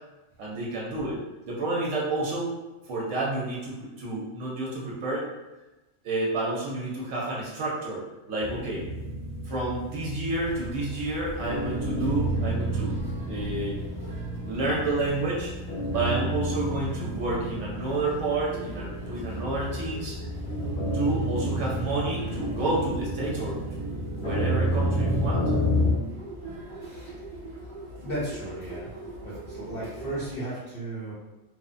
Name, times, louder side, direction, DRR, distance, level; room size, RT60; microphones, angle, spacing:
voice 1, 0.4-1.2 1.5-2.5 2.9-5.3 6.0-8.8 9.4-13.0 13.3-13.8 14.5-15.5 15.9-20.2 20.9-23.9 24.2-25.4, right 2 dB, 70° right, -4 dB, 0.9 m, -30 dB
sound 1, 8.4-25.9, equal, 85° left, 1.0 m, -30 dB
sound 2, 10.4-30.4, right 1 dB, 20° right, 0.6 m, -42 dB
voice 2, 26.7-27.2 28.0-28.9 29.2-31.1, right 1 dB, 55° left, -8 dB, 0.7 m, -35 dB
3.0 x 2.0 x 2.5 m, 1.1 s
omnidirectional pair, 1.4 m